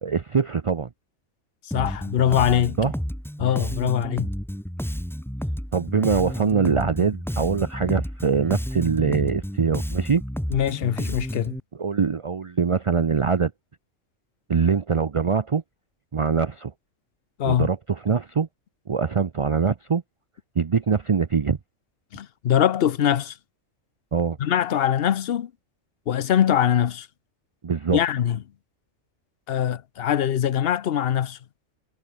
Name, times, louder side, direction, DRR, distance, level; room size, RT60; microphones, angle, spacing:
voice 1, 0.0-0.9 2.8-2.9 5.7-10.2 11.8-13.5 14.5-15.6 16.1-16.7 17.4-18.5 18.9-20.0 20.6-21.6 24.1-24.4 27.6-28.0, right 5 dB, 40° right, 0.4 m, -23 dB
voice 2, 1.7-2.8 3.4-4.3 10.5-11.6 17.4-17.7 22.1-23.3 24.4-25.5 26.1-27.1 27.9-28.4 29.5-31.4, left 10 dB, 55° left, 0.8 m, -22 dB
Bass guitar, 1.7-11.6, equal, ahead, 1.5 m, -31 dB
omnidirectional pair, 1.4 m